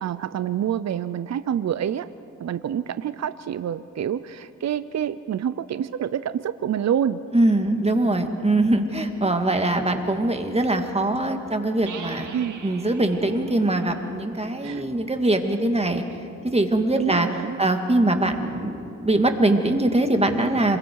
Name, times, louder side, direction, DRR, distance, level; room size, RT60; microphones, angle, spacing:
voice 1, 0.0-2.1 2.4-7.2 12.3-12.6 14.6-14.8 17.0-17.6, right 9 dB, 60° right, 13 dB, 0.6 m, -27 dB
voice 2, 7.3-12.3 12.6-16.0 16.4-17.3 17.6-20.8, right 2 dB, 20° right, 5 dB, 2.3 m, -22 dB
sound 1, 11.9-15.5, right 6 dB, 80° right, 1.9 m, -42 dB
27.0 x 21.5 x 4.8 m, 2.7 s
cardioid pair, 55°, 30 cm